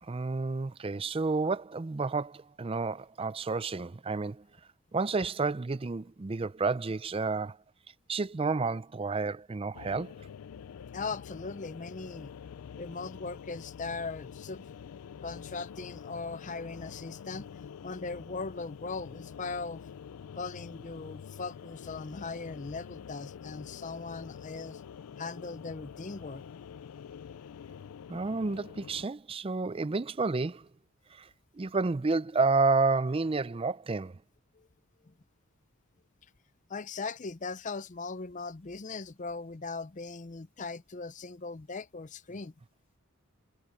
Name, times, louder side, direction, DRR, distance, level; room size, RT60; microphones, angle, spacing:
voice 1, 0.0-4.5 4.9-7.6 8.1-10.1 28.1-30.7 31.1-31.3 31.5-34.2, right 3 dB, 25° right, 0.4 m, -30 dB
sound 1, 9.7-29.1, left 7 dB, 85° left, 0.4 m, -46 dB
voice 2, 10.9-12.3 12.8-14.7 15.2-17.5 17.8-19.9 20.3-24.8 25.2-26.4 34.5-34.7 35.0-35.1 36.7-42.5, left 4 dB, 35° left, 0.6 m, -39 dB
head